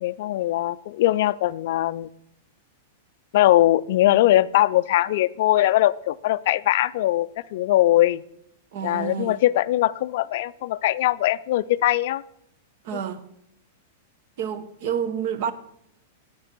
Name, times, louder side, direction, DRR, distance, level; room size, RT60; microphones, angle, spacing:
voice 1, 0.0-2.1 3.3-8.2 8.8-12.2, left 14 dB, 50° left, 0.4 m, -21 dB
voice 2, 8.7-9.4 12.8-13.3 14.4-15.5, right 8 dB, 45° right, 0.9 m, -29 dB
9.5 x 8.8 x 6.0 m
supercardioid pair, 175°, 0 cm